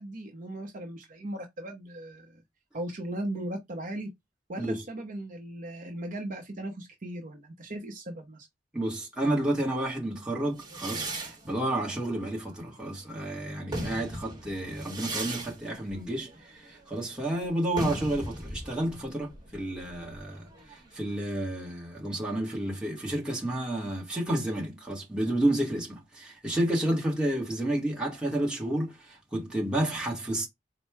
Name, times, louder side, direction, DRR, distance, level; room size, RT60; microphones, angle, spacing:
voice 1, 0.0-2.4 2.7-4.1 4.5-8.5, right 1 dB, 45° right, 0.8 m, -37 dB
voice 2, 8.7-30.5, right 1 dB, 5° right, 1.3 m, -31 dB
sound 1, 10.6-13.1 13.5-21.0, right 1 dB, 20° right, 1.4 m, -38 dB
4.2 x 2.1 x 4.6 m
head